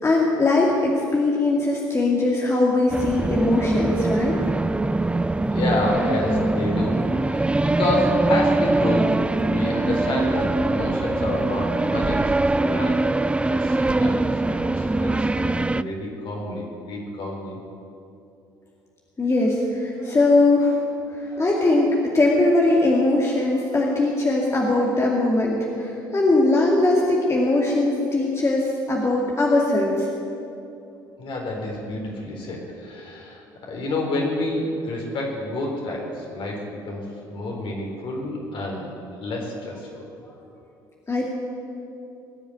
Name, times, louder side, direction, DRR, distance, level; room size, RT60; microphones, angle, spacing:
voice 1, 0.0-4.4 19.2-20.8 21.1-30.1 41.1-41.3, left 2 dB, 25° left, -2 dB, 2.4 m, -20 dB
sound 1, 2.9-15.8, right 2 dB, 10° right, 0.4 m, -22 dB
voice 2, 5.5-9.2 9.5-13.1 13.5-17.6 31.2-39.9, left 2 dB, 55° left, -1 dB, 4.0 m, -29 dB
19.0 x 7.2 x 9.3 m, 2.8 s
figure-of-eight pair, 55°, 11 cm